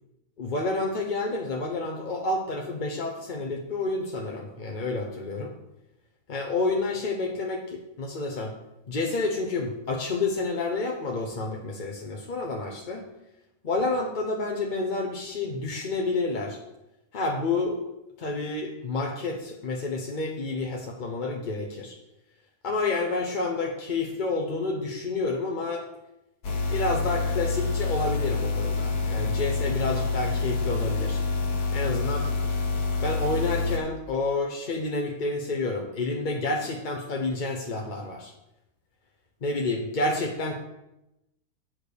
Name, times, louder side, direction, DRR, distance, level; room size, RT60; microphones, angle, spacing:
voice 1, 0.4-5.5 6.3-8.5 8.9-13.0 13.6-16.6 17.1-17.9 18.2-22.0 22.6-25.8 26.7-31.2 31.7-32.3 33.0-38.3 39.4-40.5, left 3 dB, 40° left, 1 dB, 0.8 m, -29 dB
sound 1, 26.4-33.8, left 4 dB, 75° left, 1.5 m, -27 dB
8.4 x 4.5 x 6.7 m, 0.90 s
omnidirectional pair, 1.6 m